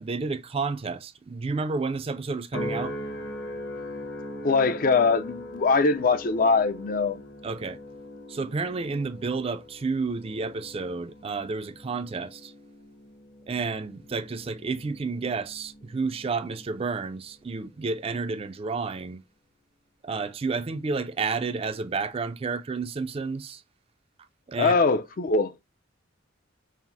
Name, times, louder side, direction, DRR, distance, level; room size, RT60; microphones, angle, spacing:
voice 1, 0.0-3.0 7.4-7.8 8.3-12.5 13.5-19.2 20.0-23.6 24.5-24.7, right 4 dB, 30° right, 0.4 m, -31 dB
sound 1, 2.5-17.0 17.5-18.0, left 1 dB, 60° left, 1.1 m, -40 dB
voice 2, 4.4-7.2 24.6-25.5, left 4 dB, 45° left, 0.4 m, -22 dB
5.6 x 2.0 x 4.5 m
head